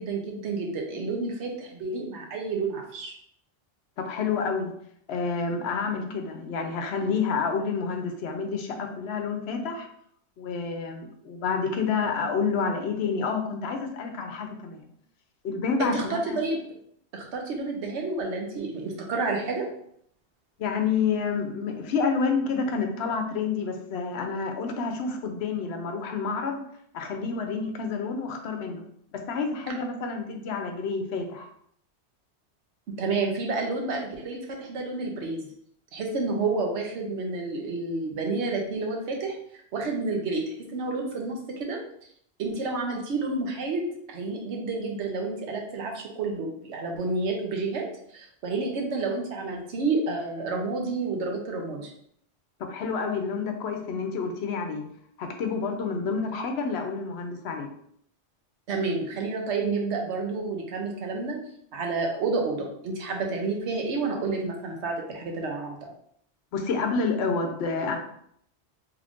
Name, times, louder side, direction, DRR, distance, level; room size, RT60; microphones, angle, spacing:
voice 1, 0.0-3.1 15.8-16.6 17.1-19.7 33.0-35.5 35.9-39.4 39.7-40.4 40.7-41.8 42.4-47.9 48.1-51.9 58.7-61.4 61.7-65.9, right 3 dB, 80° right, 1 dB, 1.1 m, -30 dB
voice 2, 4.0-4.7 5.1-9.9 10.4-14.9 15.4-16.4 20.6-26.6 26.9-28.9 29.1-31.5 52.6-54.9 55.2-57.7 66.5-68.0, left 5 dB, 75° left, 5 dB, 0.8 m, -29 dB
3.2 x 2.5 x 3.5 m, 0.69 s
omnidirectional pair, 1.1 m